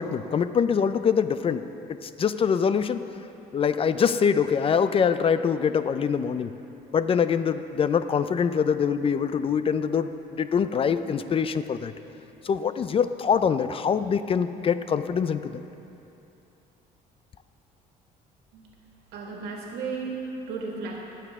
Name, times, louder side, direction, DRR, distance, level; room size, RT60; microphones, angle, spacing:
voice 1, 0.0-1.6 2.0-3.0 3.5-6.5 6.9-11.9 12.4-15.6, left 7 dB, 35° left, 12 dB, 0.4 m, -24 dB
voice 2, 19.1-21.0, right 4 dB, 80° right, -1 dB, 1.8 m, -34 dB
19.0 x 7.0 x 3.6 m, 2.9 s
cardioid pair, 110°, 17 cm